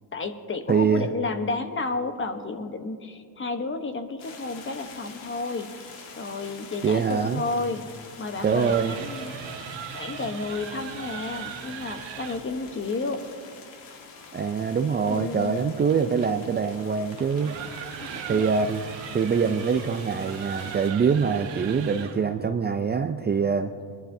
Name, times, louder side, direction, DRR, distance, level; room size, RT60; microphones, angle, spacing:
voice 1, 0.1-5.7 6.2-7.8 8.2-9.3 9.9-13.2 15.1-15.6 18.0-18.4, left 3 dB, 25° left, 8 dB, 1.0 m, -31 dB
voice 2, 0.7-1.1 6.8-7.4 8.4-8.9 14.3-17.5 18.3-18.8 19.1-23.7, right 6 dB, 25° right, 6 dB, 0.4 m, -24 dB
sound 1, 4.2-20.9, left 4 dB, 75° left, 1.8 m, -46 dB
sound 2, 8.2-12.5 15.1-22.3, right 8 dB, 80° right, 1.4 m, -39 dB
22.5 x 11.5 x 2.7 m, 2.2 s
cardioid pair, 105°, 45 cm